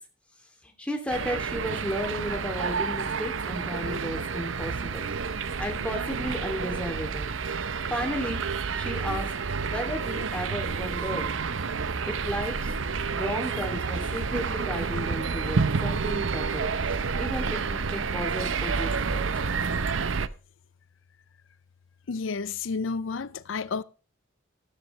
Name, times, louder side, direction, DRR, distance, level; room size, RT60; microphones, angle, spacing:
voice 1, 0.6-5.0 5.6-7.3 7.9-8.4 8.7-9.3 9.6-11.3 12.1-12.7 13.1-16.6 17.2-19.2, equal, 5° left, 2.7 m, -33 dB
sound 1, 1.1-20.3, right 5 dB, 85° right, 0.7 m, -29 dB
voice 2, 22.1-23.8, left 4 dB, 85° left, 0.5 m, -31 dB
13.5 x 13.0 x 3.2 m
head